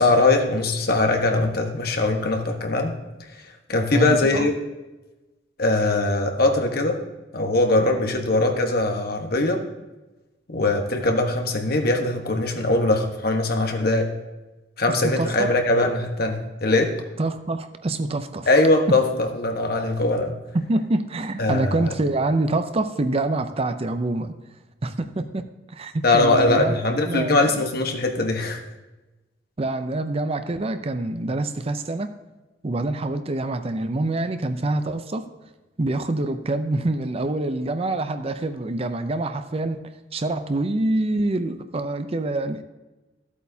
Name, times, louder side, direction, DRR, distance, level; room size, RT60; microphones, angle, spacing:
voice 1, 0.0-2.9 3.7-4.5 5.6-7.0 7.3-9.6 10.5-14.1 14.8-16.9 18.5-20.3 21.4-21.9 26.0-28.6, left 2 dB, 55° left, 3 dB, 1.3 m, -21 dB
voice 2, 3.9-4.5 15.0-15.5 17.2-18.5 20.5-24.3 24.8-26.8 27.1-27.5 29.6-32.1 32.6-35.3 35.8-39.8 40.1-42.6, right 2 dB, 35° right, 9 dB, 0.5 m, -26 dB
14.0 x 8.3 x 2.8 m, 1.1 s
head